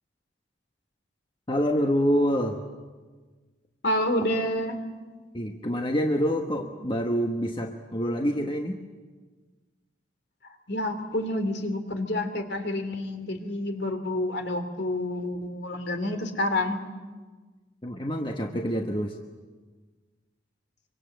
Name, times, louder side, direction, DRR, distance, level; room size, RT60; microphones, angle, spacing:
voice 1, 1.5-2.6 5.3-8.8 17.8-19.2, equal, 25° left, 2 dB, 1.3 m, -26 dB
voice 2, 3.8-4.8 10.7-16.8, left 1 dB, 60° left, 6 dB, 3.1 m, -28 dB
25.0 x 25.0 x 7.9 m, 1.4 s
head